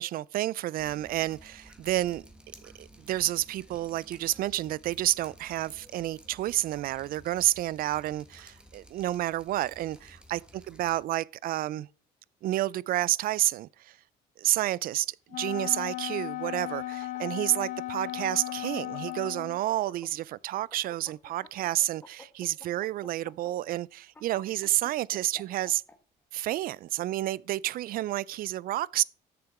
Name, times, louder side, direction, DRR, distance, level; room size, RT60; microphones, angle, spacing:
voice 1, 0.0-2.2 2.6-10.4 10.7-11.9 12.4-14.0 14.4-25.8 26.3-29.0, right 14 dB, 60° right, 0.4 m, -30 dB
Drip, 0.8-11.0, right 1 dB, 5° right, 1.4 m, -53 dB
Wind instrument woodwind instrument, 15.3-19.6, left 16 dB, 50° left, 0.4 m, -36 dB
sound 1, 16.7-20.2 20.6-25.9, left 3 dB, 10° left, 1.4 m, -50 dB
8.0 x 6.8 x 4.8 m
cardioid pair, 110°, 17 cm